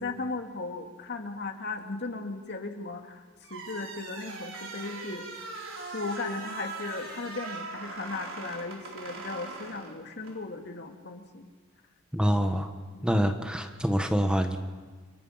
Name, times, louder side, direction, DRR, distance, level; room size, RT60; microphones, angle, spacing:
voice 1, 0.0-3.2 3.5-5.5 5.9-11.5 12.2-12.3 12.9-13.1, left 3 dB, 55° left, 4 dB, 2.3 m, -37 dB
sound 1, 3.4-10.4, right 3 dB, 70° right, 4.6 m, -41 dB
voice 2, 12.1-12.7 13.0-14.6, equal, 5° right, 6 dB, 1.3 m, -26 dB
29.0 x 25.0 x 5.8 m, 1.5 s
head